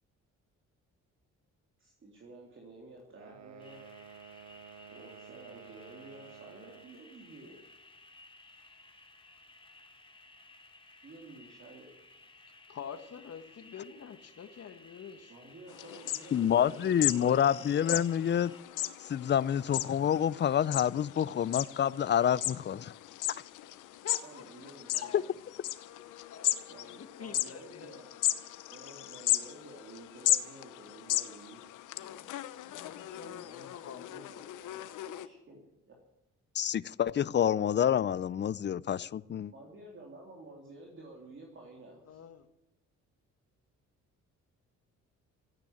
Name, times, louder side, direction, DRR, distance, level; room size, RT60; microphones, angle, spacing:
voice 1, 1.8-3.9 4.9-7.6 11.0-11.9 15.3-17.3 24.2-25.4 26.7-28.1 28.7-31.6 33.1-36.0 39.5-42.2, right 2 dB, 40° right, 3.4 m, -52 dB
sound 1, 3.1-7.0, right 8 dB, 65° right, 1.4 m, -52 dB
sound 2, 3.6-18.6, left 2 dB, 15° left, 3.0 m, -57 dB
voice 2, 12.7-15.3 24.0-24.4 24.9-25.2 26.3-27.9 31.9-32.4 32.6-35.1 42.1-42.5, left 7 dB, 55° left, 1.4 m, -47 dB
sound 3, 15.7-35.3, left 14 dB, 85° left, 0.9 m, -36 dB
voice 3, 16.3-18.5 19.0-22.9 36.5-39.5, left 9 dB, 35° left, 0.5 m, -28 dB
14.0 x 9.1 x 9.9 m
cardioid pair, 90°, 30 cm